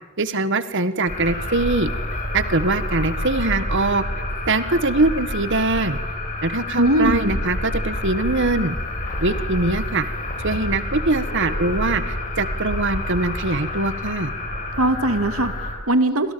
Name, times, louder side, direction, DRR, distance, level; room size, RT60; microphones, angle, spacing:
voice 1, 0.2-1.9 2.3-4.0 4.5-6.0 6.4-8.8 9.2-10.1 10.4-14.3, right 2 dB, 60° right, 13 dB, 1.8 m, -22 dB
sound 1, 1.1-15.7, left 1 dB, 40° left, 7.0 m, -28 dB
voice 2, 6.7-7.4 14.8-16.3, right 1 dB, 80° right, 10 dB, 2.2 m, -20 dB
30.0 x 26.5 x 7.1 m, 1.1 s
head